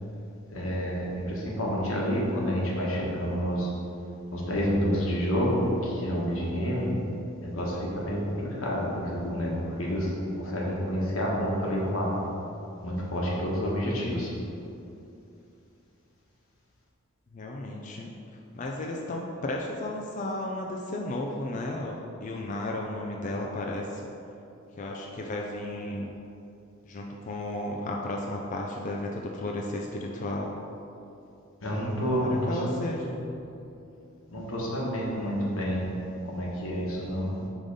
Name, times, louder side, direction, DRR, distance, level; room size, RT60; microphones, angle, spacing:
voice 1, 0.5-3.7 4.3-6.9 7.4-12.2 12.8-14.3 31.6-33.1 34.3-37.3, equal, 85° left, -4 dB, 1.3 m, -29 dB
voice 2, 17.3-18.1 18.5-24.0 24.8-26.1 26.8-30.5 32.0-33.3, left 1 dB, 40° left, -1 dB, 0.4 m, -34 dB
4.9 x 3.8 x 5.3 m, 2.7 s
head